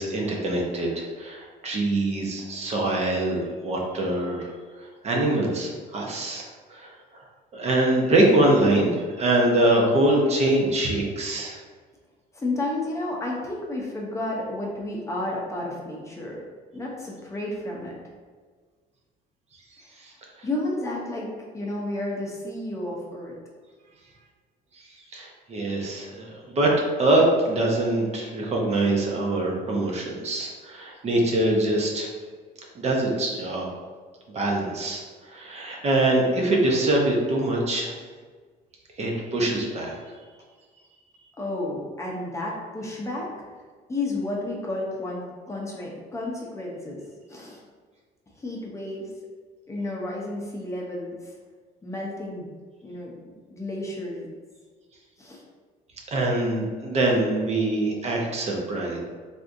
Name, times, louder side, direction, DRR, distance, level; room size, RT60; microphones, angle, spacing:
voice 1, 0.0-4.5 5.0-6.9 7.5-11.6 20.0-20.1 20.4-20.5 25.1-32.1 32.8-33.7 34.3-35.0 35.3-37.9 39.0-40.1 56.1-59.0, right 1 dB, 40° right, -1 dB, 0.6 m, -24 dB
voice 2, 12.3-16.4 16.7-17.9 20.4-21.3 21.5-23.4 41.4-43.3 43.9-47.0 47.3-47.6 48.4-49.1 49.7-51.3 51.8-52.5 52.8-54.3 55.2-55.4, left 2 dB, 15° left, -3 dB, 0.6 m, -31 dB
3.5 x 2.6 x 2.5 m, 1.5 s
cardioid pair, 110°, 17 cm